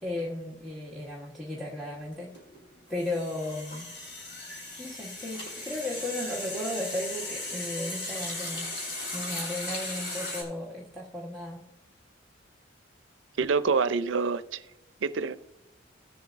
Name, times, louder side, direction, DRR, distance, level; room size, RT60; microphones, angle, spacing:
voice 1, 0.0-2.3 2.9-3.9 4.8-8.7 9.1-11.6, left 1 dB, ahead, -5 dB, 1.1 m, -35 dB
sound 1, 1.8-1.9 2.1-10.4, left 2 dB, 65° left, 3.1 m, -37 dB
voice 2, 13.4-14.6 15.0-15.4, right 4 dB, 85° right, 14 dB, 0.5 m, -26 dB
17.5 x 7.1 x 2.5 m, 0.92 s
head